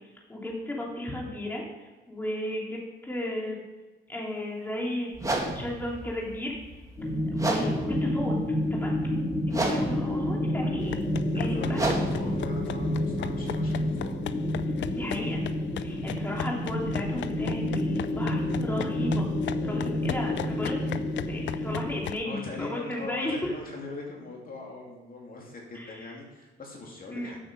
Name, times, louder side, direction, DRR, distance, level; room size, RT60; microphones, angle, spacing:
voice 1, 0.3-3.6 4.1-5.1 5.5-6.8 7.3-9.0 9.5-11.1 11.3-12.1 14.9-15.5 15.8-19.3 19.6-21.0 21.3-23.4 25.7-26.1 27.1-27.3, left 1 dB, 10° left, -2 dB, 2.8 m, -34 dB
sound 1, 5.1-13.9, right 2 dB, 15° right, 2.2 m, -34 dB
sound 2, 7.0-22.0, left 1 dB, 30° left, 2.9 m, -29 dB
sound 3, 10.8-22.2, left 11 dB, 65° left, 0.5 m, -38 dB
voice 2, 11.3-14.1 16.1-16.5 22.2-27.4, left 3 dB, 45° left, -1 dB, 2.7 m, -41 dB
7.9 x 7.8 x 6.1 m, 1.2 s
cardioid pair, 90°, 20 cm